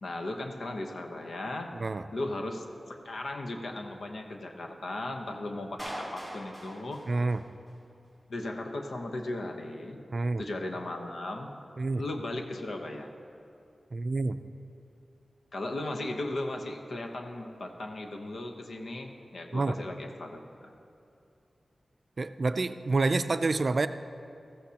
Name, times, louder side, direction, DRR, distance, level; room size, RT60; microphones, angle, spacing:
voice 1, 0.0-1.7 2.1-7.0 8.3-10.0 10.4-11.5 12.0-13.1 15.5-20.7, left 2 dB, 85° left, 3 dB, 1.0 m, -37 dB
voice 2, 1.7-2.0 7.1-7.4 10.1-10.4 11.8-12.0 13.9-14.4 19.5-19.8 22.2-23.9, right 3 dB, 55° right, 10 dB, 0.4 m, -28 dB
Clapping, 5.8-7.8, equal, 5° right, 2.6 m, -41 dB
14.5 x 14.0 x 2.9 m, 2.6 s
wide cardioid pair, 85°, 0 cm